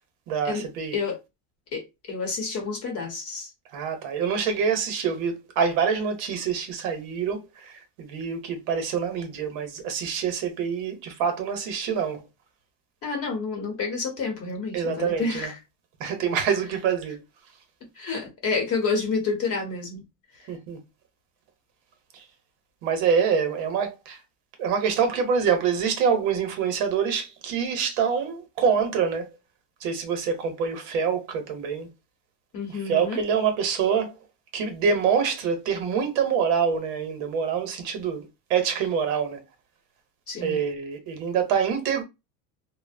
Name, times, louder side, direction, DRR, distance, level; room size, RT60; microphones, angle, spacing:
voice 1, 0.3-1.0 3.7-12.2 14.7-15.5 16.0-17.2 20.5-20.8 22.1-22.2 22.8-24.2 24.6-29.3 29.8-31.9 32.7-34.1 34.5-39.4 40.4-42.0, right 6 dB, 60° right, 0.8 m, -26 dB
voice 2, 2.1-3.5 13.0-15.5 18.0-20.0 32.5-33.2 40.3-40.6, left 4 dB, 35° left, 0.8 m, -29 dB
2.6 x 2.0 x 2.5 m
cardioid pair, 155°, 43 cm